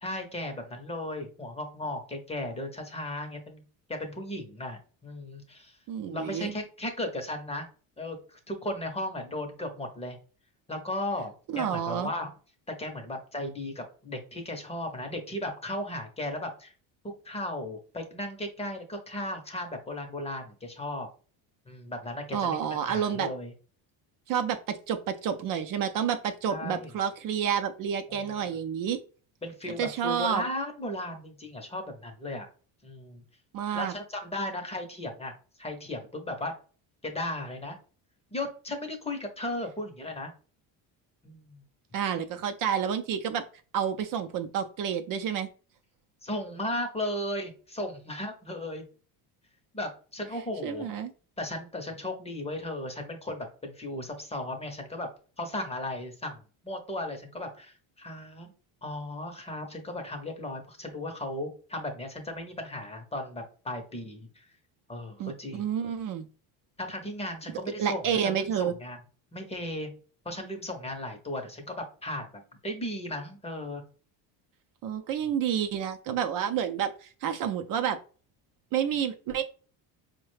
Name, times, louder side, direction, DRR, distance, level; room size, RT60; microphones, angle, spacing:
voice 1, 0.0-3.6 3.9-5.8 6.1-7.7 8.0-10.2 10.7-12.3 12.8-16.7 17.2-21.1 21.7-23.5 26.5-26.9 28.1-28.6 29.4-32.5 32.8-33.2 33.7-35.3 35.6-36.5 37.0-37.8 38.3-40.3 41.2-41.6 46.2-48.8 49.7-50.9 51.4-55.1 55.4-56.4 56.6-58.5 58.8-64.5 64.9-65.7 66.8-69.0 69.3-69.9 70.2-73.8, left 1 dB, 15° left, 4 dB, 0.7 m, -36 dB
voice 2, 5.9-6.5 11.5-12.1 22.3-23.3 24.3-29.0 29.8-30.4 33.5-33.9 41.9-43.4 43.7-45.5 50.6-51.1 65.2-66.3 67.8-68.7 74.8-78.0 78.7-79.4, right 8 dB, 50° right, 7 dB, 0.5 m, -29 dB
4.6 x 2.2 x 3.2 m, 0.38 s
cardioid pair, 125°, 41 cm